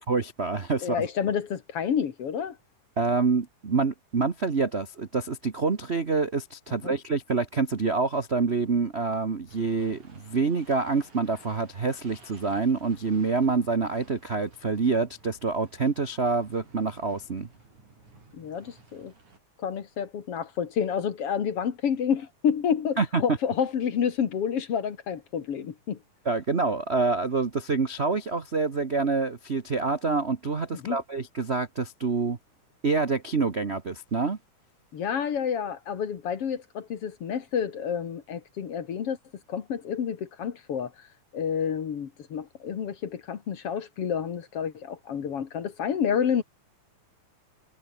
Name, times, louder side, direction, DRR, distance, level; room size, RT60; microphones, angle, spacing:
voice 1, 0.0-1.1 3.0-17.5 23.0-23.2 26.2-32.4 32.8-34.4, right 4 dB, 45° right, 0.8 m, -27 dB
voice 2, 0.8-2.6 6.8-6.9 18.3-19.1 19.6-26.0 30.7-31.0 34.9-39.2 39.5-40.9 41.3-46.4, left 7 dB, 55° left, 2.5 m, -29 dB
sound 1, 9.5-19.4, right 3 dB, 75° right, 9.0 m, -55 dB
omnidirectional pair, 3.4 m